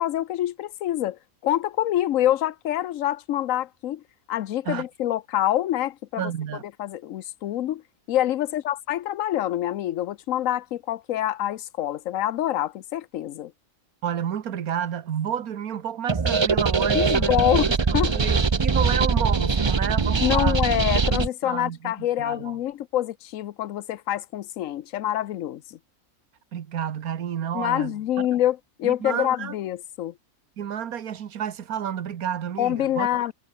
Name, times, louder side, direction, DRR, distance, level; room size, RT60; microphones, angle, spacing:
voice 1, 0.0-4.0 4.3-6.3 6.8-7.8 8.1-13.5 16.9-17.7 17.9-18.1 20.2-25.8 27.5-30.1 32.6-33.3, left 12 dB, 70° left, 1.1 m, -26 dB
voice 2, 6.2-6.6 14.0-17.4 17.9-20.6 21.4-22.6 26.5-28.3 28.8-29.5 30.6-33.1, right 9 dB, 80° right, 1.6 m, -30 dB
sound 1, 16.1-21.3, right 4 dB, 30° right, 0.5 m, -22 dB
omnidirectional pair, 1.5 m